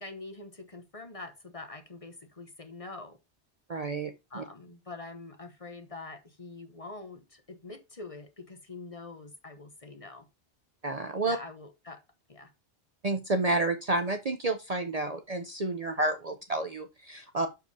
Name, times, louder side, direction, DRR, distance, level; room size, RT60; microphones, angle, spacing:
voice 1, 0.0-3.2 4.3-10.3 11.3-12.0 12.3-12.5, left 3 dB, 30° left, 1.0 m, -45 dB
voice 2, 3.7-4.4 10.8-11.4 13.0-17.5, right 2 dB, 40° right, 0.7 m, -30 dB
6.8 x 4.8 x 4.7 m
omnidirectional pair, 1.2 m